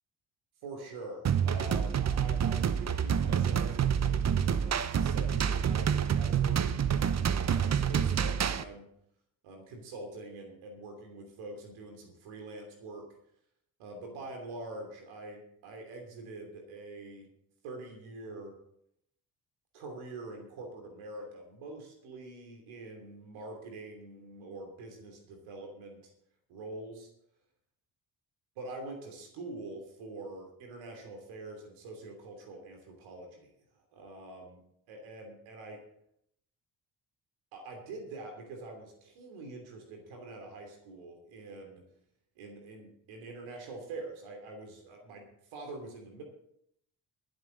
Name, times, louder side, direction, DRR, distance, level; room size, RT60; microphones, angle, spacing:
voice 1, 0.6-8.9 9.4-13.0 13.8-17.3 17.6-18.6 19.7-26.1 26.5-27.1 28.6-34.6 34.9-35.8 37.5-41.8 42.4-45.2 45.5-46.2, right 2 dB, 70° right, 3 dB, 3.1 m, -45 dB
sound 1, 1.2-8.6, right 8 dB, 35° right, 0.8 m, -28 dB
22.0 x 8.0 x 3.9 m, 0.73 s
hypercardioid pair, 45°, 50 cm